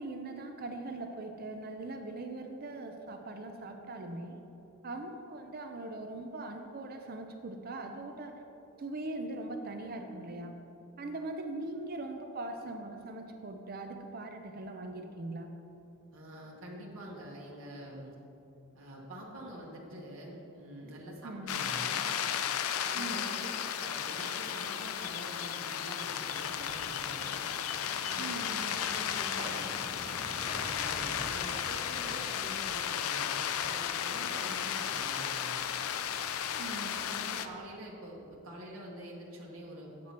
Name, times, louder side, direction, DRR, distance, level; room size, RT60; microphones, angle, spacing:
voice 1, 0.0-4.4 4.8-8.4 8.8-10.6 11.0-15.5 21.2-21.7 22.9-23.4 28.2-28.8 36.6-37.0 37.3-37.5, right 2 dB, 45° right, 5 dB, 0.5 m, -41 dB
voice 2, 16.1-18.2 18.7-22.1 22.8-23.5 23.7-27.3 28.0-28.4 28.7-29.8 30.4-33.3 33.6-35.6 36.5-40.1, equal, 65° right, -3 dB, 1.2 m, -46 dB
sound 1, 21.5-37.5, left 9 dB, 80° left, 0.4 m, -34 dB
sound 2, 25.8-37.7, equal, 35° left, 1.6 m, -49 dB
7.6 x 7.6 x 4.3 m, 2.8 s
head